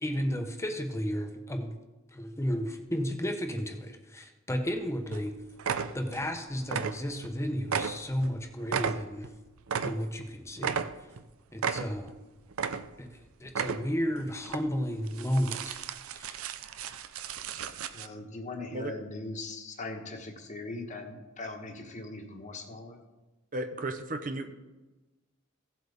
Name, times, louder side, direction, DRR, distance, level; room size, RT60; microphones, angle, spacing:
voice 1, 0.0-1.7 2.1-5.3 5.9-9.3 9.8-10.8 11.5-12.1 13.0-15.8 16.1-16.3, equal, 15° left, 5 dB, 0.9 m, -33 dB
sound 1, 4.7-4.8 5.1-5.3 5.6-6.3 6.6-7.3 7.6-10.3 10.6-11.2 11.6-12.2 12.5-13.1 13.5-14.0 14.4-14.6 15.1-18.1, right 6 dB, 85° right, 0.6 m, -34 dB
voice 2, 17.9-23.0, left 2 dB, 35° left, 4 dB, 1.3 m, -40 dB
voice 3, 23.5-24.6, right 2 dB, 40° right, 6 dB, 0.8 m, -34 dB
16.0 x 7.8 x 3.6 m, 1.1 s
head